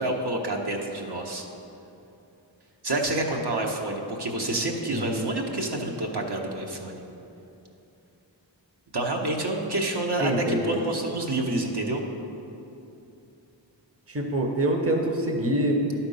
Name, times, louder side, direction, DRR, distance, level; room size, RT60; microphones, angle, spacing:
voice 1, 0.0-1.5 2.8-7.0 8.9-12.0, right 2 dB, 55° right, 0 dB, 1.1 m, -28 dB
voice 2, 4.9-5.3 10.2-10.8 14.1-15.8, right 1 dB, 30° right, 2 dB, 0.9 m, -25 dB
11.5 x 4.4 x 5.4 m, 2.8 s
wide cardioid pair, 50°, 46 cm